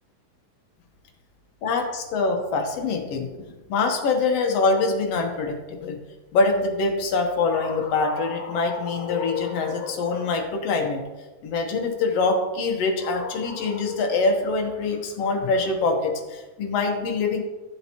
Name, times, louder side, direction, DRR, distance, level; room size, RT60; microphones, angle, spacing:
voice 1, 1.6-3.3 3.7-6.0 6.3-11.0 11.4-17.4, left 3 dB, 65° left, 3 dB, 1.9 m, -24 dB
12.5 x 7.6 x 3.0 m, 1.2 s
omnidirectional pair, 3.6 m